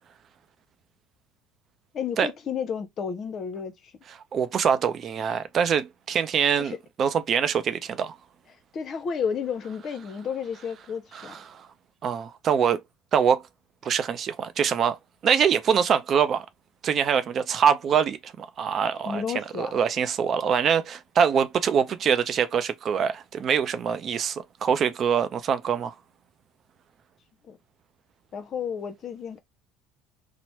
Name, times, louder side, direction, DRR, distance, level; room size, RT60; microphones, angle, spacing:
voice 1, 1.9-3.7 6.6-6.8 8.7-11.3 19.1-19.8 27.5-27.6 28.3-29.4, left 7 dB, 45° left, 0.6 m, -32 dB
voice 2, 4.3-8.2 11.1-11.6 12.0-12.8 13.1-13.4 13.8-15.0 15.2-16.5 16.8-19.2 19.6-25.9, right 7 dB, 45° right, 0.5 m, -24 dB
2.9 x 2.0 x 3.0 m
hypercardioid pair, 80°, 0 cm